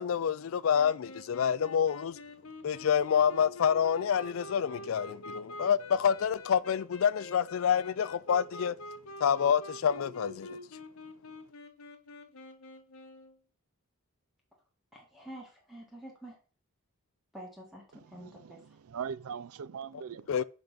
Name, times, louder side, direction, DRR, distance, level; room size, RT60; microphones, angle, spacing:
voice 1, 0.0-2.2 2.6-8.8 9.2-10.6 20.3-20.4, left 8 dB, 65° left, 0.4 m, -27 dB
sound 1, 0.7-13.4, left 1 dB, 85° left, 1.2 m, -46 dB
voice 2, 14.9-16.3 17.3-18.6, right 1 dB, ahead, 1.7 m, -48 dB
voice 3, 17.9-20.4, right 7 dB, 85° right, 0.4 m, -41 dB
5.2 x 5.2 x 6.0 m
head